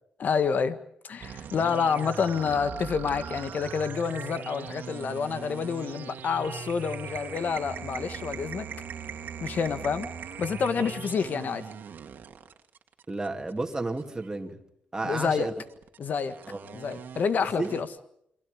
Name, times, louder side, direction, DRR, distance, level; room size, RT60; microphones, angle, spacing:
voice 1, 0.2-0.8 1.0-8.7 9.4-10.1 10.4-11.7 15.0-15.5 16.0-16.4 16.7-17.9, left 6 dB, 60° left, 11 dB, 1.6 m, -28 dB
sound 1, 1.2-14.3 15.2-17.8, right 7 dB, 70° right, 2.1 m, -40 dB
voice 2, 13.1-14.6 14.9-15.5 16.5-16.6 17.6-17.7, right 2 dB, 15° right, 3 dB, 2.6 m, -31 dB
29.0 x 23.5 x 5.2 m, 0.73 s
cardioid pair, 105°, 3 cm